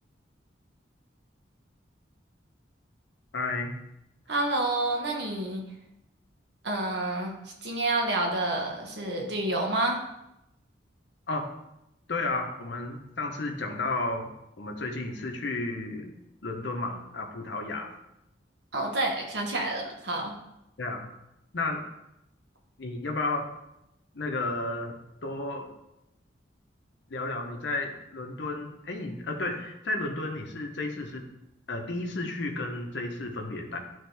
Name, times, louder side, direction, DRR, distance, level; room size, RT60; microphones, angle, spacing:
voice 1, 3.3-3.7 11.3-11.5 12.1-14.3 14.6-16.1 16.4-17.9 20.8-21.1 21.5-21.8 22.8-23.5 24.1-25.0 25.2-25.7 27.1-31.2 31.7-33.8, left 2 dB, 65° left, 2 dB, 0.9 m, -32 dB
voice 2, 4.3-5.6 6.6-7.3 7.6-10.0 18.7-20.3, right 2 dB, 60° right, 1 dB, 1.3 m, -28 dB
10.5 x 3.6 x 3.4 m, 0.87 s
head